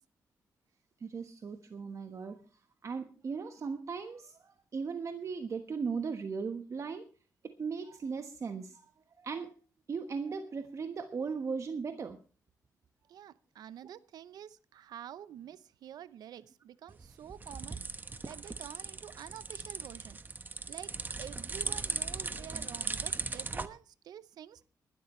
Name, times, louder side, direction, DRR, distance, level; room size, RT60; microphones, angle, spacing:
voice 1, 1.0-2.4 2.8-7.1 7.4-8.9 9.2-9.5 9.9-12.2, right 5 dB, 50° right, 1.3 m, -37 dB
voice 2, 13.1-17.8 18.2-20.2 20.7-24.7, right 10 dB, 85° right, 0.7 m, -48 dB
sound 1, 16.9-23.7, right 3 dB, 30° right, 1.1 m, -38 dB
21.0 x 12.5 x 3.2 m
cardioid pair, 85°, 7 cm